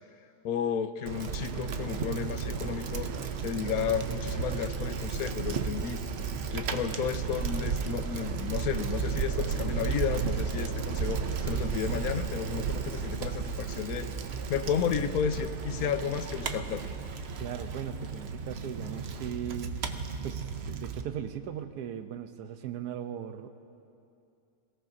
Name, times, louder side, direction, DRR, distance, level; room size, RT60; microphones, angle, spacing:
voice 1, 0.4-3.1 3.4-6.0 6.5-14.1 14.5-16.9, left 8 dB, 75° left, 10 dB, 1.1 m, -32 dB
Bicycle, 1.1-21.0, right 6 dB, 55° right, 0.8 m, -33 dB
voice 2, 17.4-19.8 20.2-23.5, right 9 dB, 90° right, 8 dB, 1.3 m, -38 dB
27.0 x 17.0 x 2.7 m, 2.6 s
omnidirectional pair, 1.6 m